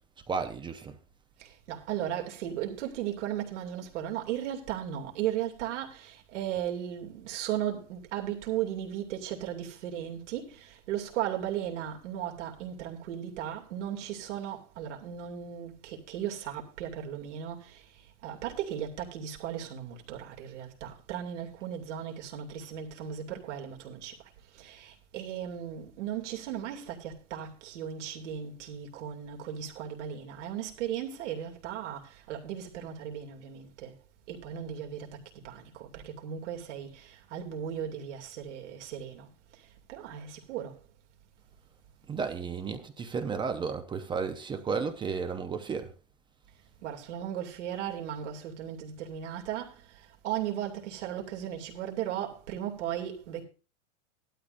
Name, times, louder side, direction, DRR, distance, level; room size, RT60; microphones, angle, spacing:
voice 1, 0.3-1.0 42.1-45.9, right 5 dB, 15° right, 0.6 m, -33 dB
voice 2, 1.4-24.2 24.5-33.9 34.3-40.8 46.8-53.4, right 10 dB, 70° right, 2.6 m, -36 dB
15.0 x 12.0 x 2.6 m
supercardioid pair, 150°, 37 cm